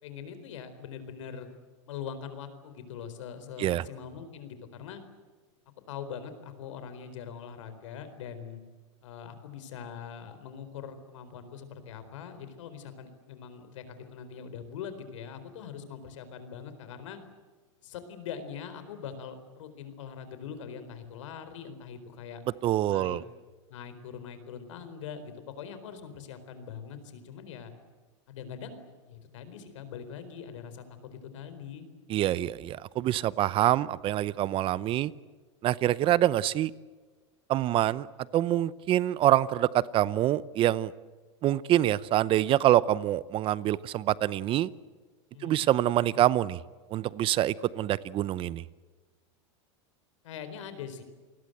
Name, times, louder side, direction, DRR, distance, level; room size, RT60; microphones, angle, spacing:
voice 1, 0.0-1.5 1.9-5.0 5.9-8.6 9.0-17.2 17.8-22.4 22.9-23.2 23.7-27.7 28.3-28.8 29.1-30.8 31.1-31.9 45.3-45.7 46.0-46.2 50.2-51.0, left 7 dB, 80° left, 10 dB, 4.3 m, -42 dB
voice 2, 22.6-23.2 32.1-35.1 35.6-36.7 37.5-38.1 38.3-40.9 41.4-44.7 45.4-46.6 46.9-48.6, right 13 dB, 35° right, 19 dB, 0.7 m, -25 dB
28.5 x 20.5 x 7.9 m, 1.4 s
supercardioid pair, 125°, 16 cm